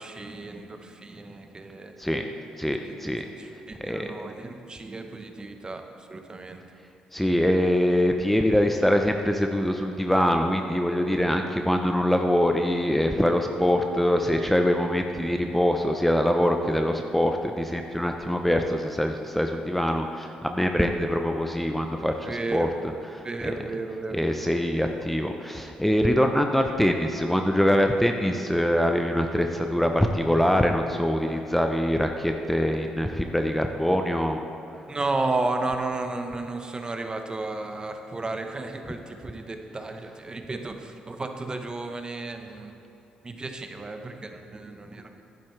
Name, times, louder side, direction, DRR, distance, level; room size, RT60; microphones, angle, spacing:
voice 1, 0.0-1.9 2.8-5.8 6.1-6.6 22.2-22.7 23.2-24.2 34.9-42.7 43.2-45.1, right 2 dB, 30° right, 5 dB, 1.0 m, -33 dB
voice 2, 2.6-3.2 3.8-4.1 7.1-22.7 23.1-23.5 24.1-34.4, equal, 5° left, 4 dB, 0.7 m, -24 dB
11.0 x 10.0 x 3.3 m, 2.9 s
supercardioid pair, 60°, 3 cm